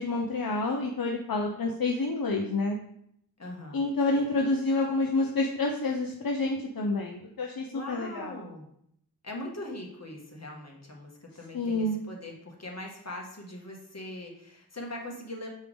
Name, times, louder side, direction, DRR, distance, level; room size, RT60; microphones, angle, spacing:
voice 1, 0.0-2.8 3.7-8.4 11.5-12.0, left 2 dB, 65° left, 1 dB, 0.7 m, -28 dB
voice 2, 3.4-3.8 7.7-8.7 9.2-15.5, left 1 dB, 45° left, -1 dB, 1.5 m, -41 dB
6.5 x 4.6 x 3.5 m, 0.72 s
wide cardioid pair, 70°, 38 cm